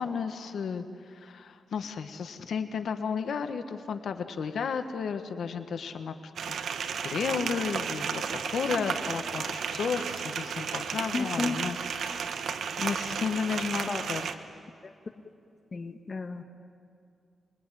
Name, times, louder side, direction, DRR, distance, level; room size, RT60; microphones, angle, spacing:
voice 1, 0.0-6.1 7.0-12.5 12.8-14.3, left 6 dB, 70° left, 8 dB, 1.4 m, -33 dB
sound 1, 6.4-14.3, right 6 dB, 80° right, 1.3 m, -33 dB
voice 2, 11.1-11.5 13.9-14.0 14.8-14.9 15.7-16.4, left 4 dB, 35° left, 6 dB, 1.4 m, -32 dB
26.5 x 22.5 x 10.0 m, 2.4 s
wide cardioid pair, 135°, 0 cm